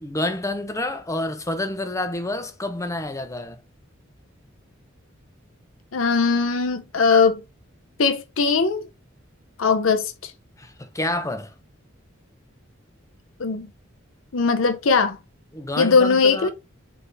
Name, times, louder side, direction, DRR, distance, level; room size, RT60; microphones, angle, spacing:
voice 1, 0.0-3.6 10.6-11.5 15.5-16.5, left 1 dB, 15° left, 0.6 m, -28 dB
voice 2, 5.9-7.4 8.0-8.9 9.6-10.3 13.4-13.7 14.3-15.2 15.8-16.5, left 4 dB, 75° left, 0.7 m, -20 dB
4.1 x 3.5 x 3.3 m
head